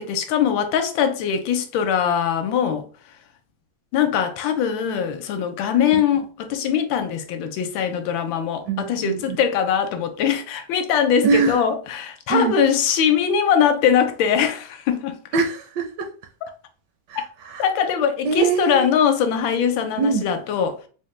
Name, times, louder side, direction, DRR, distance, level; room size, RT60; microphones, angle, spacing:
voice 1, 0.0-2.9 3.9-15.2 16.4-16.5 17.1-17.2 17.6-20.8, left 8 dB, 80° left, 1.3 m, -21 dB
voice 2, 8.7-9.4 11.2-11.6 12.3-12.6 15.3-16.1 17.1-17.6 18.2-18.9 20.0-20.3, right 4 dB, 75° right, 1.0 m, -23 dB
4.2 x 2.1 x 3.1 m
omnidirectional pair, 2.2 m